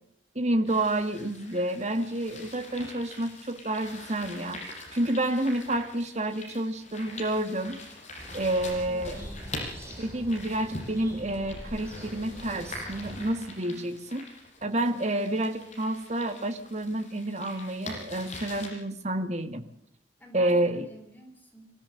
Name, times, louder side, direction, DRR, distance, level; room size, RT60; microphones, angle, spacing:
voice 1, 0.4-4.7 4.9-7.8 8.3-9.2 10.0-14.3 14.6-19.6 20.3-20.9, right 1 dB, 40° right, 8 dB, 2.0 m, -29 dB
sound 1, 0.7-18.7, left 2 dB, 40° left, 7.3 m, -44 dB
sound 2, 8.2-13.3, equal, 15° right, 7.5 m, -43 dB
voice 2, 8.8-9.5 13.6-13.8 20.2-21.7, right 1 dB, 10° left, 3 dB, 4.0 m, -48 dB
25.0 x 15.5 x 7.9 m, 0.73 s
head